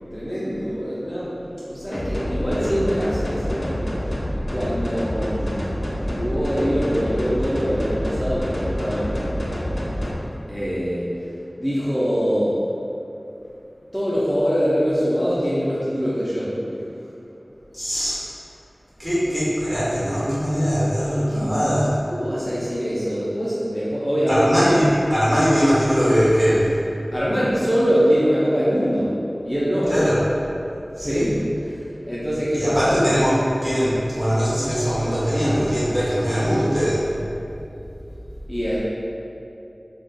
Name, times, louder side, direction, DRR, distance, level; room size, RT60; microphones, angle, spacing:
voice 1, 0.1-3.8 4.5-5.6 6.0-9.4 10.5-11.1 11.6-12.6 13.9-16.8 21.3-21.8 22.1-24.7 27.1-29.1 29.4-29.9 31.0-33.0 38.5-38.8, equal, 10° left, -10 dB, 0.6 m, -23 dB
sound 1, 1.9-10.1, equal, 60° left, 0.5 m, -27 dB
voice 2, 17.7-18.2 19.0-21.9 24.3-26.7 29.9-30.2 31.0-31.3 32.5-37.1, equal, 30° right, -10 dB, 1.3 m, -21 dB
2.4 x 2.4 x 3.7 m, 2.7 s
wide cardioid pair, 40°, 0 cm